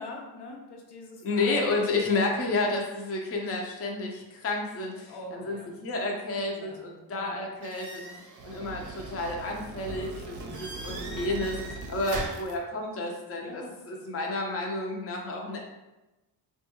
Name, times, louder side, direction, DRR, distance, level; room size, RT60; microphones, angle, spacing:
voice 1, 0.0-1.7 2.0-2.4 5.1-5.7 6.5-6.8 7.1-7.5 8.0-8.2 10.2-10.6 13.3-13.7, left 2 dB, 75° left, 0 dB, 0.8 m, -44 dB
voice 2, 1.2-8.0 8.4-11.6 11.9-15.6, left 2 dB, 35° left, 0 dB, 0.6 m, -31 dB
sound 1, 7.6-12.5, right 3 dB, 50° right, 0.6 m, -38 dB
3.6 x 2.3 x 2.9 m, 1.0 s
cardioid pair, 90°, 41 cm